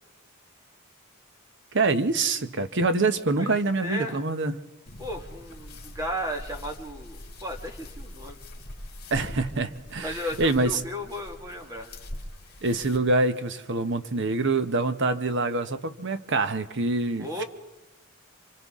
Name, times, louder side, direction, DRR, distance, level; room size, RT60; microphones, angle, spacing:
voice 1, 1.7-4.6 9.1-10.8 12.6-17.4, right 3 dB, 60° right, 10 dB, 1.0 m, -25 dB
voice 2, 3.8-4.2 5.0-8.4 10.0-11.9 17.2-17.4, equal, 15° right, 2 dB, 1.8 m, -35 dB
sound 1, 4.9-13.0, left 1 dB, 50° left, 2.7 m, -42 dB
28.0 x 25.5 x 3.7 m, 0.99 s
head